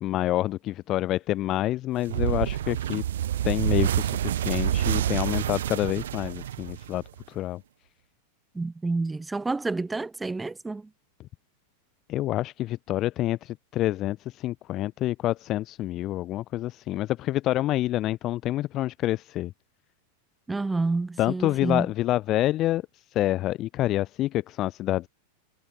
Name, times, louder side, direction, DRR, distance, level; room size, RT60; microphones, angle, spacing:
voice 1, 0.0-3.0 3.4-7.6 12.1-19.5 21.2-25.1, left 15 dB, 35° left, 1.0 m, -27 dB
sound 1, 2.1-7.2, right 11 dB, 60° right, 0.9 m, -27 dB
voice 2, 8.5-10.9 20.5-21.9, right 3 dB, 10° right, 0.4 m, -29 dB
figure-of-eight pair, 90°, 0 cm